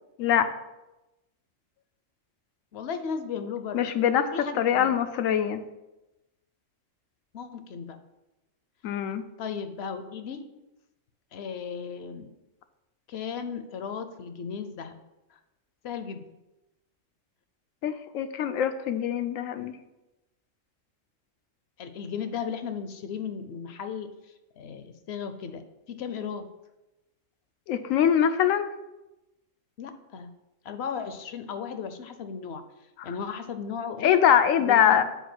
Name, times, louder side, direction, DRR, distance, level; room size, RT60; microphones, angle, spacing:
voice 1, 0.2-0.5 3.7-5.6 8.8-9.2 17.8-19.7 27.7-28.7 33.0-33.1 34.0-35.0, left 9 dB, 90° left, 10 dB, 1.0 m, -23 dB
voice 2, 2.7-3.9 4.3-4.9 7.3-8.0 9.4-10.4 11.3-12.3 13.1-15.0 15.3-15.4 15.8-16.2 21.8-25.6 26.0-26.5 29.8-30.3 30.6-32.6 33.0-34.2 34.6-35.0, left 6 dB, 65° left, 9 dB, 0.8 m, -35 dB
5.5 x 4.6 x 5.9 m, 0.99 s
omnidirectional pair, 1.3 m